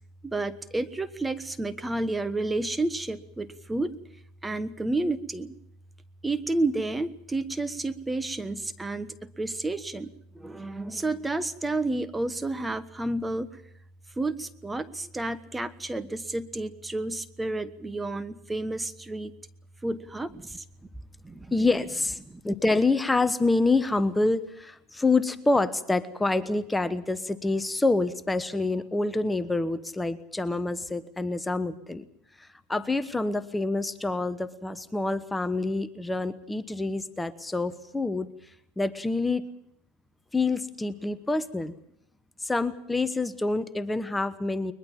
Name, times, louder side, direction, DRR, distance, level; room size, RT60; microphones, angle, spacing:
voice 1, 0.2-3.9 4.4-5.5 6.2-13.6 14.2-19.3 19.8-20.6 21.2-21.5 22.3-22.4, right 2 dB, 10° right, 13 dB, 1.3 m, -31 dB
voice 2, 21.5-22.2 22.4-32.0 32.4-39.4 40.3-41.7 42.4-44.7, left 3 dB, 10° left, 14 dB, 1.2 m, -27 dB
22.0 x 21.5 x 7.2 m, 0.72 s
hypercardioid pair, 95°, 0 cm